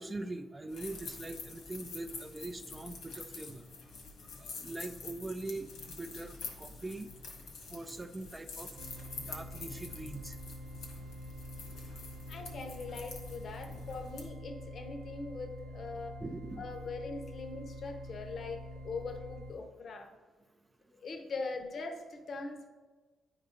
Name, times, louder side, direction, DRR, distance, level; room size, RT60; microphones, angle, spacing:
voice 1, 0.0-3.6 4.4-7.1 7.7-8.7 9.2-10.3 16.2-16.8, right 2 dB, 15° right, 8 dB, 0.4 m, -42 dB
sound 1, 0.7-14.2, left 4 dB, 85° left, 1.7 m, -47 dB
sound 2, 8.8-19.5, equal, 70° right, 0.9 m, -46 dB
voice 2, 12.3-16.2 16.6-20.1 20.9-22.7, left 3 dB, 50° left, 5 dB, 0.8 m, -41 dB
9.6 x 4.0 x 4.9 m, 1.3 s
cardioid pair, 125°, 0 cm